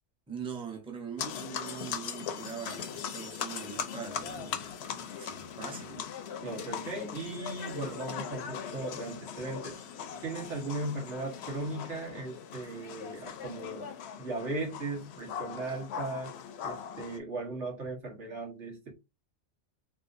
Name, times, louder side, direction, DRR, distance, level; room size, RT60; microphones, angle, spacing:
voice 1, 0.3-6.1, right 6 dB, 5° right, 0.6 m, -42 dB
sound 1, 1.2-17.2, left 7 dB, 70° left, 0.8 m, -40 dB
voice 2, 6.4-9.8 10.2-13.9 14.2-16.3 16.6-18.9, right 2 dB, 90° right, 1.7 m, -37 dB
3.5 x 2.8 x 2.5 m
omnidirectional pair, 1.2 m